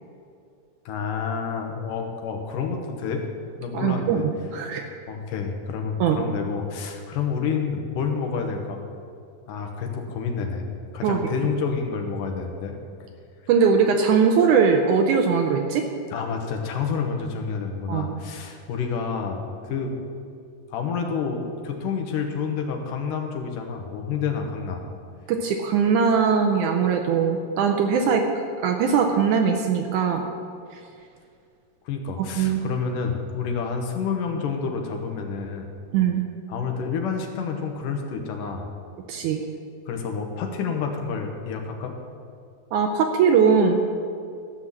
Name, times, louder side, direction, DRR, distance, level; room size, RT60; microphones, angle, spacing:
voice 1, 0.9-3.3 3.6-4.3 5.1-8.8 9.5-10.7 10.9-12.8 16.1-19.9 20.7-24.8 31.9-35.7 36.5-38.7 39.9-42.0, left 5 dB, 70° left, 3 dB, 2.6 m, -29 dB
voice 2, 3.7-4.9 6.0-6.2 11.0-11.2 13.5-15.9 17.9-18.1 25.3-28.2 28.6-30.2 32.4-32.6 35.9-36.2 39.1-39.4 42.7-43.8, right 6 dB, 80° right, 4 dB, 1.8 m, -20 dB
13.5 x 6.2 x 7.5 m, 2.4 s
omnidirectional pair, 4.1 m